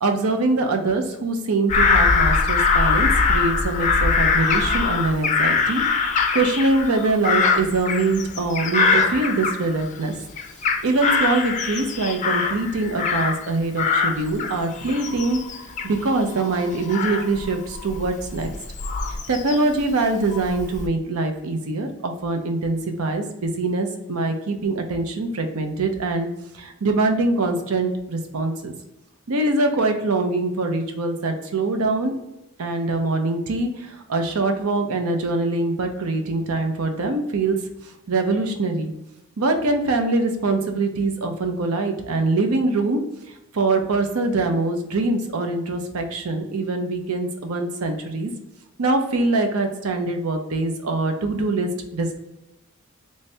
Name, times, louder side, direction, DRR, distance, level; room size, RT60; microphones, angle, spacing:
voice 1, 0.0-5.8 6.3-10.2 10.8-15.4 15.8-18.5 19.1-26.3 26.5-28.7 29.3-32.1 32.6-37.6 38.1-38.9 39.4-43.0 43.5-48.3 48.8-52.2, right 2 dB, 90° right, 4 dB, 0.6 m, -23 dB
Bird vocalization bird call bird song / Crow, 1.7-10.0 10.4-13.5 13.8-19.8 20.3-20.9, left 4 dB, 35° left, 0.4 m, -22 dB
3.2 x 2.7 x 3.3 m, 0.93 s
head